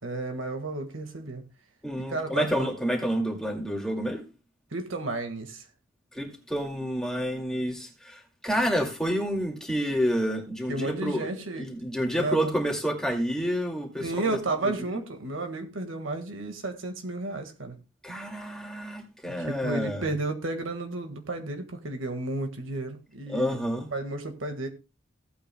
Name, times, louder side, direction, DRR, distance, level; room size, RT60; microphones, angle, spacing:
voice 1, 0.0-1.4 2.1-2.7 4.7-5.7 10.7-11.7 12.1-12.5 14.0-17.8 19.2-23.6 23.9-24.7, right 2 dB, 80° right, 1.7 m, -32 dB
voice 2, 1.8-4.2 6.1-11.3 11.5-14.8 18.0-20.1 23.3-23.9, equal, 5° left, 2.2 m, -29 dB
16.5 x 8.7 x 2.2 m
head